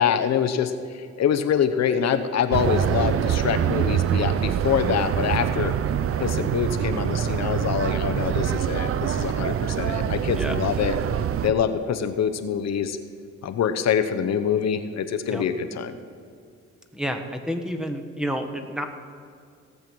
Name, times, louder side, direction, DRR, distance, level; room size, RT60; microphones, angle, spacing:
voice 1, 0.0-5.7 6.2-11.0 11.4-13.0 13.4-16.0, left 8 dB, 60° left, 10 dB, 0.8 m, -25 dB
sound 1, 2.5-11.5, right 9 dB, 50° right, 0.5 m, -25 dB
voice 2, 16.9-18.9, equal, ahead, 5 dB, 1.2 m, -29 dB
17.0 x 6.9 x 6.0 m, 2.3 s
cardioid pair, 90°, 30 cm